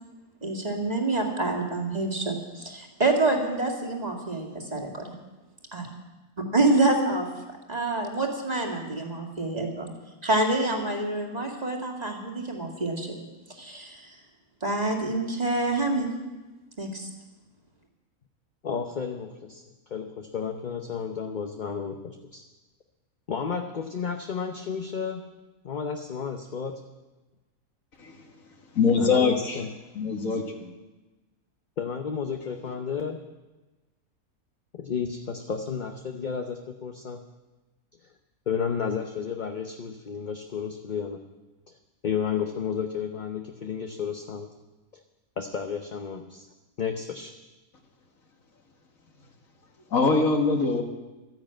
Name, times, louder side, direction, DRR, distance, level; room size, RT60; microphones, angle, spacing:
voice 1, 0.4-5.1 5.7-5.9 6.5-7.3 7.7-9.9 10.2-13.2 13.5-14.1 14.6-16.1 16.8-17.1, right 2 dB, 25° right, 1 dB, 2.2 m, -27 dB
voice 2, 18.6-19.6 19.9-22.4 23.3-25.2 25.6-26.8 29.0-29.7 31.8-33.2 34.7-37.2 38.5-41.2 42.0-44.5 45.4-46.5 46.8-47.3, left 6 dB, 40° left, 5 dB, 0.8 m, -32 dB
voice 3, 28.7-29.6 30.0-30.7 49.9-50.8, left 4 dB, 60° left, 3 dB, 2.0 m, -23 dB
13.0 x 10.5 x 8.9 m, 1.1 s
omnidirectional pair, 1.6 m